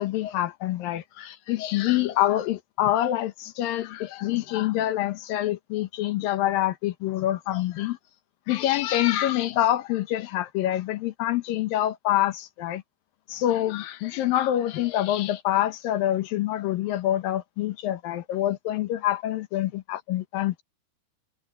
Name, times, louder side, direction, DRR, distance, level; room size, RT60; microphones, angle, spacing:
voice 1, 0.0-8.0 8.5-12.8 13.3-20.6, left 13 dB, 70° left, 2.4 m, -26 dB
omnidirectional pair, 4.8 m